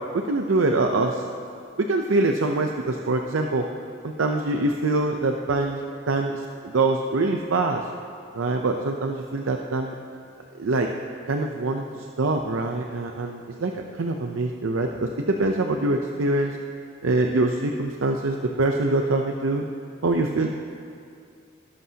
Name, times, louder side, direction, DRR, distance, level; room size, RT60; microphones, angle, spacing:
voice 1, 0.1-1.3 1.8-3.7 4.0-7.8 8.3-9.9 10.6-10.9 11.3-16.6 17.0-19.7 20.0-20.5, right 2 dB, 85° right, 3 dB, 0.6 m, -24 dB
19.5 x 11.5 x 2.8 m, 2.4 s
head